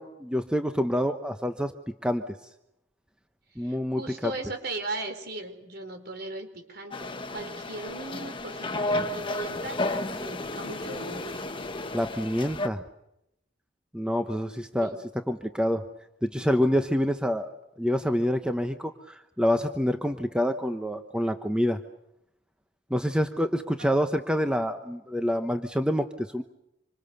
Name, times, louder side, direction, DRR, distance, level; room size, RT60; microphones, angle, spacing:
voice 1, 0.0-1.7 2.0-2.4 3.6-4.3 11.9-12.8 13.9-15.0 15.3-15.8 16.2-21.8 22.9-26.4, equal, 5° right, 7 dB, 1.0 m, -27 dB
voice 2, 3.6-11.7 14.8-15.1 23.8-23.9, right 2 dB, 55° right, 7 dB, 4.5 m, -38 dB
sound 1, 6.9-12.7, left 2 dB, 25° left, 1.4 m, -32 dB
27.0 x 26.0 x 6.8 m, 0.83 s
head